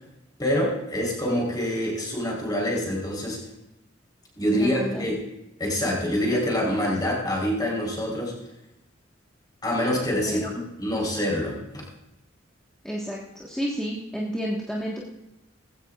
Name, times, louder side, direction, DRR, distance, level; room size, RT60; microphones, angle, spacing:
voice 1, 0.4-3.4 4.4-5.2 5.6-8.3 9.6-11.8, equal, 20° left, -3 dB, 4.0 m, -26 dB
voice 2, 4.5-5.0 10.2-10.5 12.8-15.0, equal, 5° left, -5 dB, 1.5 m, -31 dB
19.0 x 15.5 x 2.4 m, 0.90 s
head